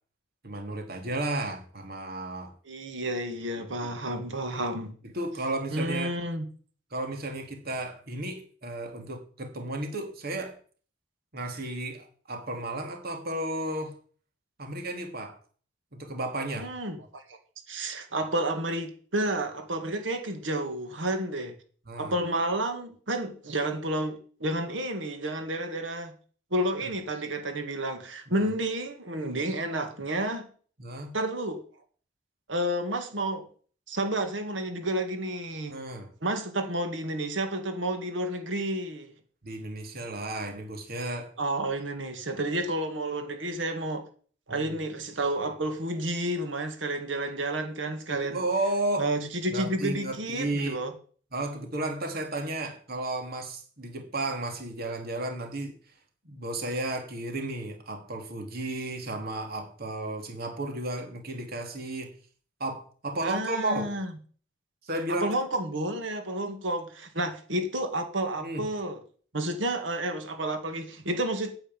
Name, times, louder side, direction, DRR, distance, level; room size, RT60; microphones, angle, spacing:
voice 1, 0.4-2.5 3.8-3.9 5.0-6.1 6.9-10.6 11.3-14.0 14.6-15.4 15.9-16.7 21.9-22.1 28.3-28.5 30.8-31.1 35.7-36.1 39.4-41.3 44.5-44.7 48.1-49.1 49.5-50.8 51.3-55.7 56.2-62.1 62.6-63.9 64.8-65.3 68.4-68.6, right 2 dB, 55° right, 2.6 m, -33 dB
voice 2, 2.7-4.9 5.7-6.5 16.6-17.4 17.7-21.5 22.0-26.1 26.5-30.5 31.1-31.6 32.5-33.5 33.9-35.8 36.2-39.1 41.4-44.1 44.5-48.4 49.0-50.9 63.2-64.1 65.1-69.0 69.3-71.5, right 1 dB, 75° right, 1.9 m, -30 dB
9.4 x 7.0 x 9.0 m
head